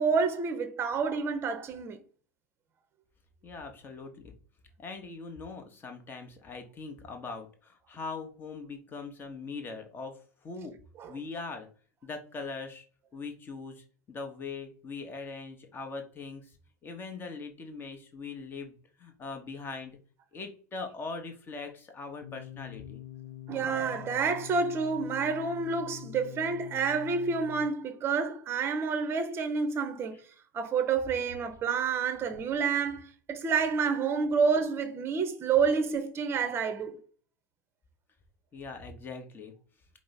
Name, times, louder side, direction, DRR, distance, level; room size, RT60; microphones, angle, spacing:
voice 1, 0.0-2.0 11.0-11.1 23.5-30.2 30.5-37.0, right 5 dB, 25° right, 0.7 m, -29 dB
voice 2, 3.4-4.3 4.8-10.8 11.1-11.7 12.0-12.8 13.1-16.5 16.8-19.9 20.3-23.0 38.5-39.5, left 4 dB, 20° left, 0.8 m, -41 dB
sound 1, 22.2-27.7, left 13 dB, 75° left, 0.4 m, -45 dB
4.9 x 2.0 x 3.9 m
figure-of-eight pair, 80°, 9 cm